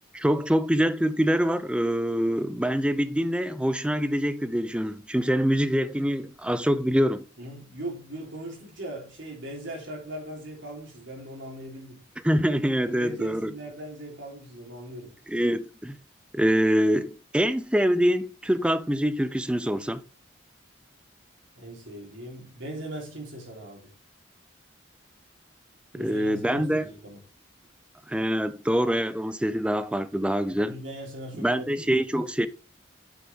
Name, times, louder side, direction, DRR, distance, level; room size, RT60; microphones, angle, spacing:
voice 1, 0.1-7.2 12.2-13.5 15.3-16.0 16.3-20.0 26.0-26.9 28.1-30.7 31.4-32.5, equal, 5° right, 0.4 m, -25 dB
voice 2, 7.4-12.0 12.8-15.1 21.6-23.9 25.9-27.2 30.5-32.0, right 1 dB, 65° right, 3.7 m, -39 dB
7.4 x 6.8 x 3.5 m
head